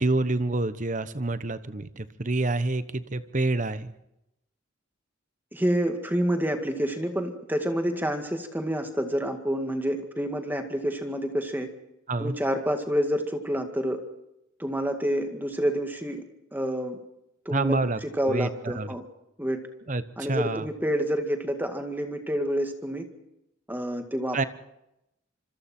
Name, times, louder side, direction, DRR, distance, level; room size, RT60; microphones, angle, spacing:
voice 1, 0.0-3.9 12.1-12.3 17.5-18.9 19.9-20.7 24.3-24.4, right 2 dB, 40° right, 13 dB, 1.1 m, -27 dB
voice 2, 5.5-11.7 12.2-14.0 14.6-16.2 16.5-17.0 17.5-19.0 19.4-19.6 20.2-23.0 23.7-24.4, equal, 10° right, 5 dB, 2.0 m, -28 dB
26.5 x 25.0 x 4.5 m, 0.85 s
head